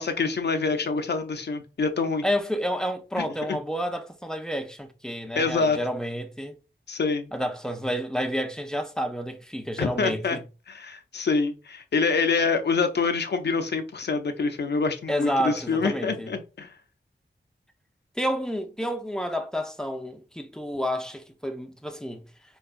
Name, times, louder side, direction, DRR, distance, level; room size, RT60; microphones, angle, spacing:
voice 1, 0.0-2.2 3.2-3.6 5.4-5.8 6.9-7.3 9.8-10.4 10.7-16.7, left 4 dB, 65° left, 0.6 m, -26 dB
voice 2, 2.2-6.6 7.3-10.4 15.1-16.3 18.2-22.2, equal, 5° left, 0.5 m, -30 dB
4.5 x 2.3 x 2.4 m
wide cardioid pair, 95°, 19 cm